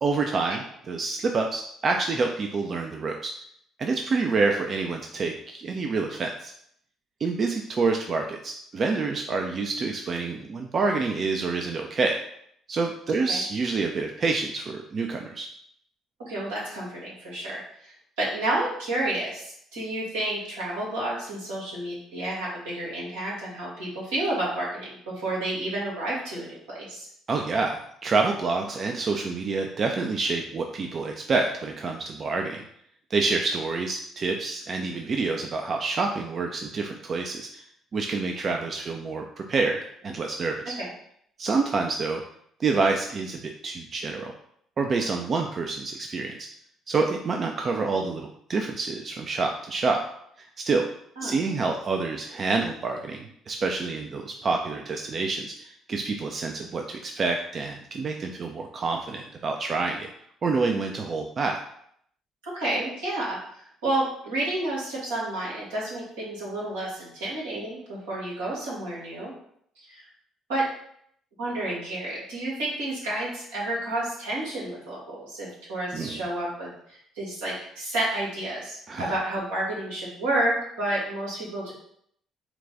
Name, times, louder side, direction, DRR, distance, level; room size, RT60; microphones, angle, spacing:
voice 1, 0.0-3.3 3.8-6.5 7.2-12.2 12.7-15.5 27.3-32.6 33.1-37.6 37.9-40.8 41.4-42.2 42.6-44.3 44.8-46.3 46.9-50.0 50.4-50.8 51.2-60.1 60.4-61.6 75.9-76.2 78.9-79.1, right 4 dB, 45° right, 3 dB, 0.4 m, -27 dB
voice 2, 16.3-27.1 51.2-51.3 62.4-63.4 63.8-69.3 69.8-70.0 70.5-70.6 71.4-81.7, right 1 dB, 90° right, -6 dB, 1.7 m, -30 dB
4.5 x 2.3 x 3.9 m, 0.68 s
hypercardioid pair, 60°, 0 cm